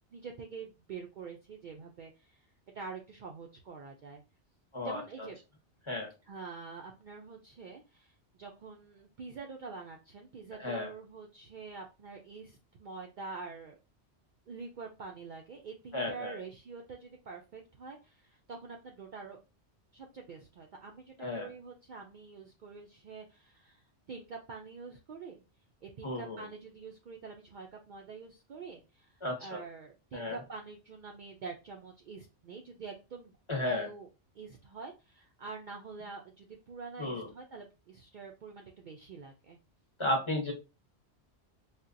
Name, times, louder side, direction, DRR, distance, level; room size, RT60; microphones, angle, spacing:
voice 1, 0.1-2.5 2.7-4.2 4.8-5.4 6.3-13.8 14.5-19.4 19.9-25.4 25.8-33.3 33.7-34.1 34.3-39.6, right 4 dB, 60° right, 1 dB, 0.5 m, -46 dB
voice 2, 4.7-5.3 5.9-6.1 10.6-10.9 15.9-16.4 21.2-21.5 26.0-26.5 29.2-29.6 30.1-30.4 33.5-33.9 37.0-37.3 40.0-40.5, left 1 dB, 30° left, -2 dB, 0.9 m, -34 dB
4.0 x 2.2 x 2.5 m, 0.29 s
omnidirectional pair, 1.2 m